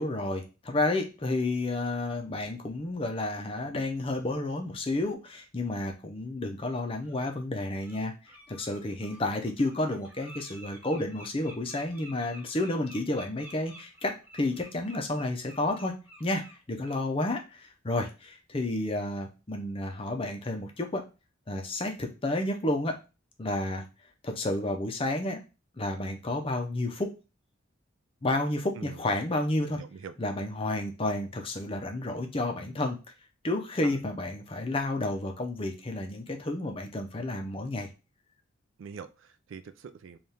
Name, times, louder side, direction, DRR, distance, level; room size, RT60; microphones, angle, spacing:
voice 1, 0.0-8.1 8.5-15.9 16.2-21.0 21.5-23.0 23.4-23.9 24.2-25.4 25.8-27.1 28.2-29.8 30.2-33.0 33.4-37.9, left 2 dB, 25° left, 4 dB, 0.5 m, -31 dB
Bird, 6.2-6.3 7.0-7.2 7.6-8.0 8.2-17.0 17.3-17.5 17.9-18.0, right 1 dB, 10° right, 0.9 m, -51 dB
voice 2, 29.8-30.1 33.8-33.9 38.8-40.2, right 6 dB, 70° right, 11 dB, 0.3 m, -44 dB
3.4 x 2.4 x 4.1 m, 0.30 s
head